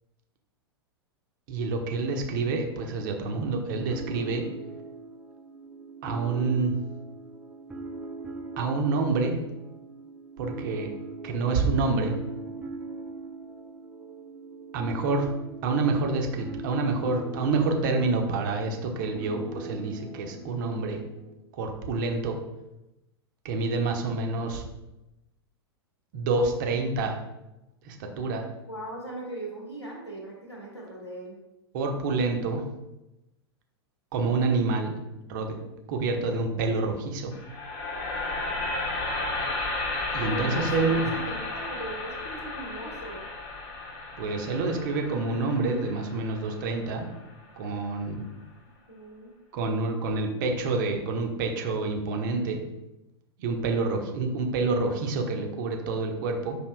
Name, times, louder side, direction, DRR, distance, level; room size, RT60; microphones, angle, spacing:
voice 1, 1.5-4.4 6.0-6.7 8.6-9.4 10.4-10.9 11.2-12.1 14.7-15.3 15.6-21.0 21.5-22.4 23.4-24.7 26.1-27.2 27.8-28.4 31.7-32.6 34.1-34.9 35.3-35.5 35.9-37.3 40.1-41.1 44.2-47.1 47.6-48.2 49.5-52.6 53.4-56.6, right 3 dB, 50° right, 3 dB, 0.7 m, -27 dB
sound 1, 3.9-21.3, right 3 dB, 10° right, 0.4 m, -41 dB
voice 2, 28.7-31.3 40.2-43.2 48.9-49.3, right 1 dB, 90° left, -2 dB, 1.1 m, -39 dB
sound 2, 37.3-47.4, left 2 dB, 40° left, 0.9 m, -33 dB
5.9 x 2.7 x 2.2 m, 0.94 s
figure-of-eight pair, 95°, 14 cm